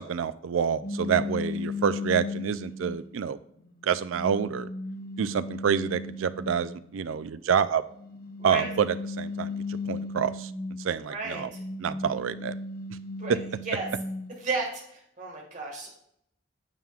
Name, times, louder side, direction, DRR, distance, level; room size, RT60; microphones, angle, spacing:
voice 1, 0.0-3.4 3.8-4.7 5.2-7.8 8.4-10.5 10.8-11.5 11.8-12.5 13.3-13.4, right 7 dB, 90° right, 14 dB, 0.4 m, -27 dB
sound 1, 0.8-3.0 3.6-6.8 7.9-10.9 11.3-14.3, left 3 dB, 50° left, 1.1 m, -36 dB
voice 2, 8.4-8.7 11.1-11.6 13.2-13.4 13.7-13.9 14.4-15.9, right 3 dB, 40° right, 0 dB, 1.8 m, -33 dB
9.0 x 7.4 x 2.4 m, 0.72 s
head